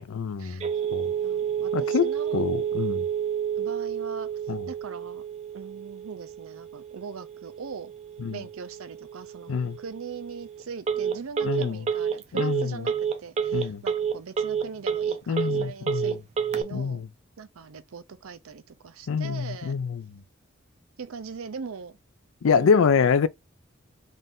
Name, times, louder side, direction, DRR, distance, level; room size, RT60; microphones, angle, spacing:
voice 1, 0.0-1.1 1.7-3.1 4.5-4.6 8.2-8.4 9.5-9.8 11.4-11.8 12.3-12.8 13.5-13.8 15.3-16.1 16.7-17.0 19.1-20.0 22.4-23.3, left 6 dB, 75° left, 0.4 m, -25 dB
Telephone, 0.6-16.6, right 7 dB, 30° right, 0.4 m, -30 dB
voice 2, 1.2-2.4 3.6-4.3 4.7-5.2 5.5-7.9 8.3-9.5 9.8-12.9 13.2-16.2 16.5-17.0 17.4-19.8 21.0-22.0 22.5-23.1, right 5 dB, 85° right, 0.5 m, -40 dB
3.9 x 2.6 x 3.5 m
head